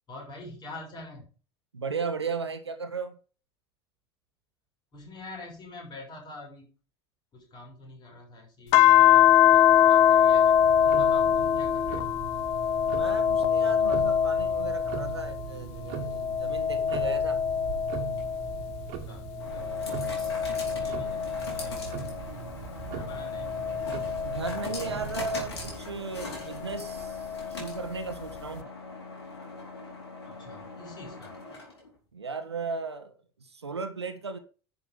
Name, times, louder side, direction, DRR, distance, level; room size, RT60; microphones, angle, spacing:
voice 1, 0.1-1.3 4.9-6.7 7.3-12.1 19.0-19.7 20.0-22.2 22.9-23.7 30.2-31.4, left 2 dB, 30° left, 6.0 m, -46 dB
voice 2, 1.7-3.2 12.9-17.4 24.2-27.3 27.6-28.6 32.1-33.1 33.4-34.4, right 4 dB, 80° right, 1.4 m, -35 dB
sound 1, 8.7-15.4 15.9-18.8 19.4-22.2 22.9-25.4 26.7-27.8, left 10 dB, 50° left, 0.9 m, -24 dB
Tick-tock, 10.5-25.8, right 7 dB, 55° right, 1.9 m, -40 dB
sound 2, 18.0-32.0, left 3 dB, 75° left, 4.2 m, -41 dB
10.5 x 6.5 x 5.1 m
figure-of-eight pair, 70°, 14 cm